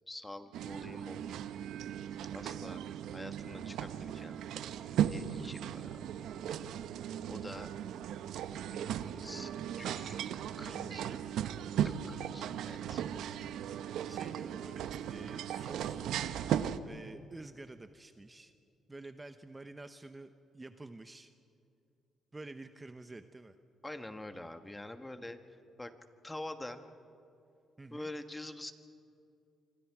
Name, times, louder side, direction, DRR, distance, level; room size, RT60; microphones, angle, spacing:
voice 1, 0.1-1.4 2.3-2.8 3.1-4.4 5.1-6.0 7.3-7.7 8.7-10.2 10.6-11.2 11.8-13.0 23.8-25.4 25.8-25.9 26.2-26.8 27.9-28.7, left 1 dB, 10° left, 8 dB, 1.5 m, -46 dB
sound 1, 0.5-16.8, right 10 dB, 80° right, 0.8 m, -37 dB
sound 2, 12.8-16.6, right 3 dB, 45° right, 2.6 m, -62 dB
voice 2, 14.1-16.4 16.8-18.5 18.9-21.3 22.3-23.6 27.8-28.1, right 2 dB, 20° right, 9 dB, 0.8 m, -49 dB
26.5 x 25.0 x 4.8 m, 2.6 s
cardioid pair, 90°, 0 cm